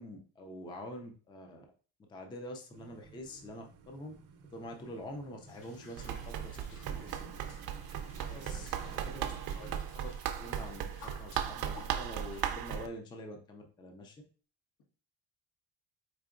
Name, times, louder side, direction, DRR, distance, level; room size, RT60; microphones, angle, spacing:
voice 1, 0.0-1.6 2.1-4.1 4.5-7.3 8.3-8.7 9.0-10.9 11.2-14.2, left 1 dB, 10° left, 3 dB, 0.3 m, -46 dB
sound 1, 2.7-9.8, right 5 dB, 80° right, 0.7 m, -54 dB
sound 2, 5.5-12.5, left 4 dB, 55° left, 0.8 m, -56 dB
Run, 6.0-12.9, right 9 dB, 55° right, 0.5 m, -37 dB
voice 2, 8.2-9.4, left 4 dB, 85° left, -3 dB, 1.6 m, -56 dB
4.6 x 2.8 x 2.4 m, 0.39 s
cardioid pair, 135°, 46 cm